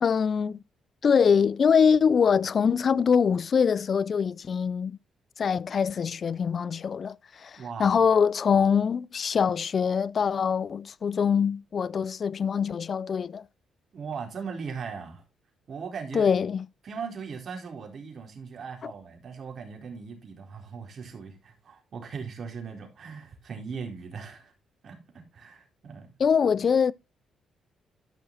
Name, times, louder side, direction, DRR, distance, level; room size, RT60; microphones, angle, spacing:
voice 1, 0.0-0.6 1.0-5.0 5.4-13.5 16.1-16.7 18.8-18.9 26.2-26.9, left 6 dB, 50° left, 0.5 m, -24 dB
voice 2, 7.6-8.0 8.5-8.7 13.9-15.2 15.7-16.3 16.8-24.5 24.8-25.0 25.3-26.1, right 5 dB, 55° right, 4.2 m, -39 dB
13.5 x 6.1 x 4.0 m
cardioid pair, 85°, 0 cm